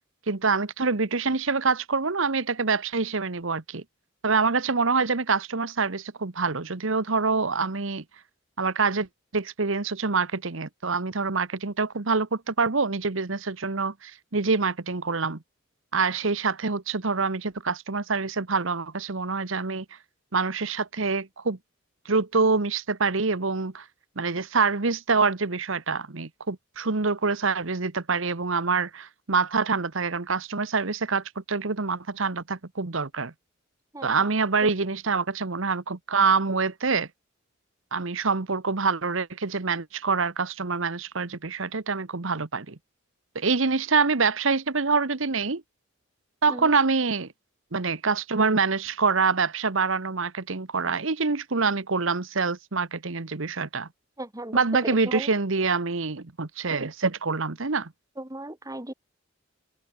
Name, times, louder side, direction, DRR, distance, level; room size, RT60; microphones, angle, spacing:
voice 1, 0.3-3.8 4.2-8.0 8.6-9.1 9.3-15.4 15.9-19.8 20.3-21.6 22.0-23.8 24.2-33.3 34.0-37.1 37.9-42.8 43.3-45.6 46.4-47.3 47.7-53.9 54.5-57.9, right 4 dB, 65° right, 1.2 m, -26 dB
voice 2, 33.9-34.3 34.6-34.7 46.5-46.7 54.2-55.3 58.2-58.9, right 1 dB, 15° right, 2.0 m, -36 dB
head